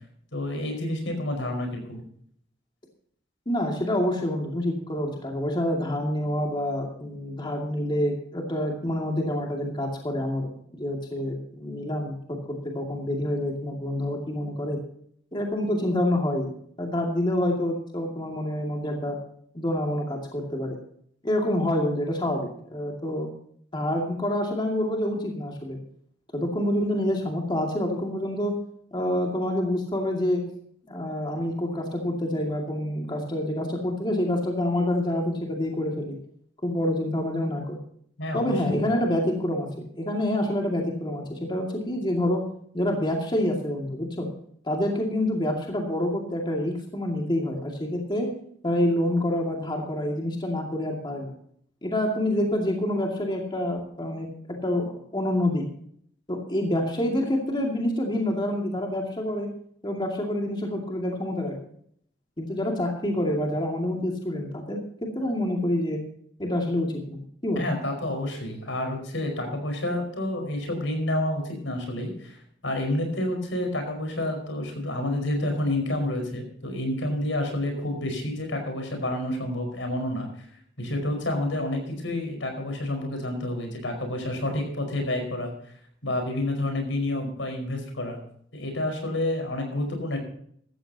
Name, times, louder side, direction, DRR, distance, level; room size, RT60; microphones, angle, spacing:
voice 1, 0.3-2.0 38.2-38.8 67.6-72.4 72.6-80.3 80.8-85.5 86.0-88.2 88.5-90.2, left 1 dB, 80° left, 4 dB, 5.2 m, -29 dB
voice 2, 3.5-12.2 12.7-14.8 15.3-16.5 16.8-19.2 19.5-20.8 21.2-23.3 23.7-25.8 26.3-28.5 28.9-30.4 30.9-36.2 36.6-37.8 38.3-42.4 42.7-44.3 44.6-48.3 48.6-51.3 51.8-54.3 54.6-55.6 56.3-59.5 59.8-61.5 62.4-66.0 66.4-67.6, left 1 dB, 25° left, 0 dB, 2.4 m, -27 dB
15.5 x 13.5 x 2.9 m, 0.63 s
head